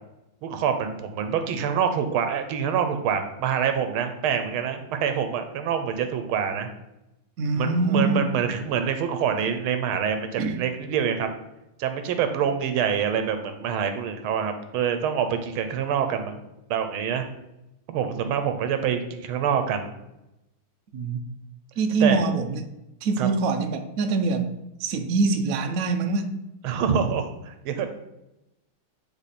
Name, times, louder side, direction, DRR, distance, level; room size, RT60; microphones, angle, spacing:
voice 1, 0.4-6.7 7.6-11.3 11.8-16.4 16.7-17.3 17.9-19.9 22.0-22.2 23.2-23.3 26.6-27.9, right 7 dB, 85° right, 8 dB, 1.6 m, -26 dB
voice 2, 7.4-8.2 10.4-10.6 20.9-21.2 21.8-22.6 23.0-24.5 24.8-26.3, right 3 dB, 70° right, 6 dB, 0.8 m, -24 dB
9.1 x 3.4 x 4.2 m, 0.90 s
omnidirectional pair, 2.3 m